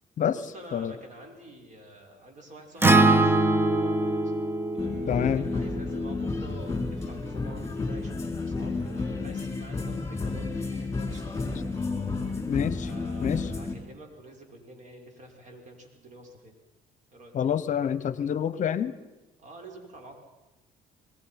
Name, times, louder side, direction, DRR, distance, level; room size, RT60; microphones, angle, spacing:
voice 1, 0.3-4.3 4.7-11.7 12.8-16.5 17.1-17.3 19.4-20.1, right 1 dB, 45° right, 3 dB, 5.7 m, -48 dB
Acoustic guitar, 2.8-7.1, right 2 dB, 15° right, 0.8 m, -24 dB
sound 1, 4.8-13.7, left 3 dB, 15° left, 4.1 m, -31 dB
voice 2, 5.1-5.5 12.5-12.9 13.2-13.5 17.3-18.9, left 8 dB, 50° left, 16 dB, 0.9 m, -27 dB
26.5 x 20.0 x 5.8 m, 1.1 s
cardioid pair, 110°, 17 cm